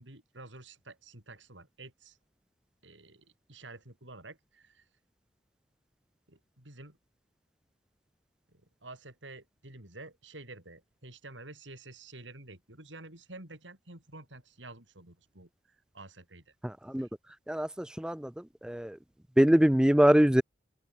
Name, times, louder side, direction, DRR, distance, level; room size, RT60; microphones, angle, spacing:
voice 1, 0.0-2.2 2.8-4.9 6.3-7.0 8.8-16.5 17.0-17.3, right 2 dB, 85° right, 6.5 m, -50 dB
voice 2, 16.6-17.1 17.5-18.3 18.6-19.0 19.4-20.4, equal, 5° right, 0.3 m, -23 dB
open air
head